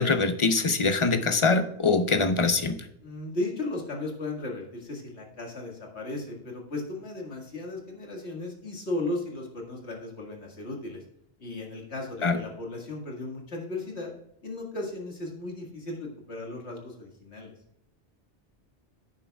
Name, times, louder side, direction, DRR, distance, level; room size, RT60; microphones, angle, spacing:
voice 1, 0.0-2.8 12.2-12.4, left 4 dB, 30° left, 9 dB, 0.7 m, -23 dB
voice 2, 3.0-11.0 11.4-14.1 14.4-17.5, left 2 dB, 70° left, 0 dB, 2.3 m, -36 dB
10.5 x 9.4 x 2.4 m, 0.78 s
omnidirectional pair, 1.1 m